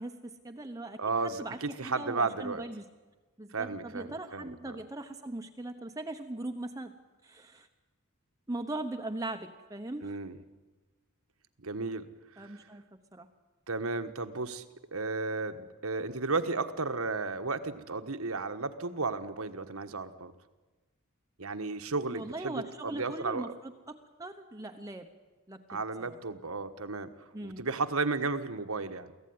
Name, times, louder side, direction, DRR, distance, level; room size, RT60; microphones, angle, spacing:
voice 1, 0.0-2.9 3.4-6.9 7.2-7.7 8.5-10.2 12.4-12.8 13.1-13.3 22.1-25.1 25.5-25.8 26.1-26.2 27.3-27.7, right 2 dB, 15° right, 4 dB, 1.0 m, -40 dB
voice 2, 1.0-2.6 3.5-4.8 10.0-10.4 11.6-12.1 12.3-12.7 13.7-14.6 14.9-20.3 21.4-23.5 25.7-27.1 27.4-29.1, right 3 dB, 70° right, 8 dB, 1.4 m, -34 dB
24.0 x 15.5 x 9.6 m, 1.2 s
head